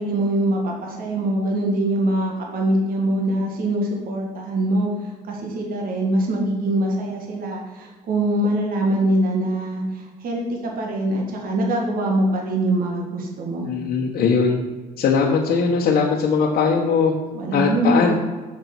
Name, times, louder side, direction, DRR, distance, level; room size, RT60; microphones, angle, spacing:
voice 1, 0.0-13.7 17.3-18.1, right 1 dB, 60° right, 0 dB, 1.8 m, -23 dB
voice 2, 13.7-14.6 15.0-17.1 17.5-18.1, left 5 dB, 60° left, -2 dB, 1.2 m, -20 dB
6.9 x 6.8 x 5.9 m, 1.3 s
cardioid pair, 110°, 17 cm